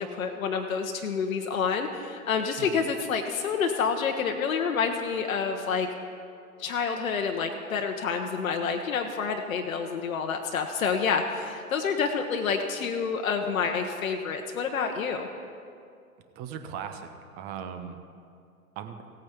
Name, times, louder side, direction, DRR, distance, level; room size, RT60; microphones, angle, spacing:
voice 1, 0.0-5.9 6.6-15.3, left 6 dB, 65° left, 4 dB, 1.0 m, -28 dB
voice 2, 16.4-18.0 18.8-19.0, right 8 dB, 20° right, 8 dB, 0.7 m, -38 dB
16.5 x 8.7 x 4.5 m, 2.4 s
figure-of-eight pair, 115°, 43 cm